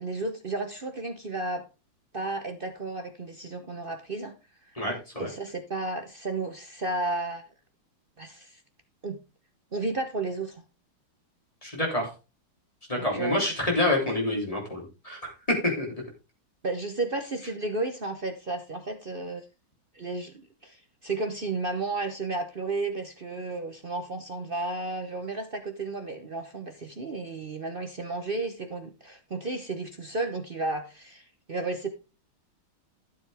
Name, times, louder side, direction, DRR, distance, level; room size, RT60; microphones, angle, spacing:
voice 1, 0.0-1.6 2.1-4.3 5.2-7.4 8.2-8.6 9.0-9.2 9.7-10.6 13.0-13.5 16.6-19.4 19.9-31.9, right 2 dB, 50° right, 7 dB, 0.6 m, -33 dB
voice 2, 4.8-5.3 11.6-12.1 12.9-15.3 15.6-15.9, left 1 dB, 15° left, 0 dB, 3.5 m, -27 dB
12.5 x 7.4 x 3.5 m, 0.30 s
omnidirectional pair, 2.3 m